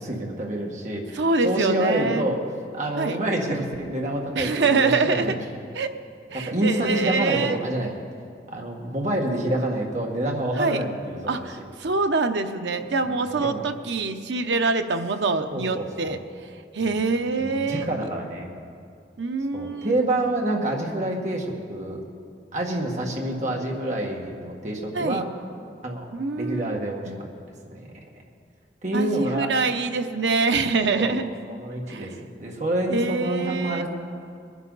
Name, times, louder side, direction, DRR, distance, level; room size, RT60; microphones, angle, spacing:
voice 1, 0.0-2.4 2.7-5.3 6.3-7.9 8.5-11.4 13.0-13.7 15.5-16.2 16.8-17.0 17.4-18.6 19.5-22.0 22.5-25.3 25.8-26.1 26.4-27.3 27.7-28.0 28.8-29.5 31.0-31.2 31.5-33.9, right 1 dB, 40° right, 0 dB, 1.7 m, -27 dB
voice 2, 1.1-2.3 3.0-3.2 4.3-5.3 5.7-5.9 6.3-7.6 10.6-10.8 11.3-16.2 16.7-17.9 19.2-19.9 24.9-25.3 26.1-26.7 27.0-27.2 28.9-31.2 31.9-32.1 32.9-33.8, right 3 dB, 85° right, 7 dB, 0.8 m, -25 dB
21.5 x 11.0 x 4.0 m, 2.3 s
head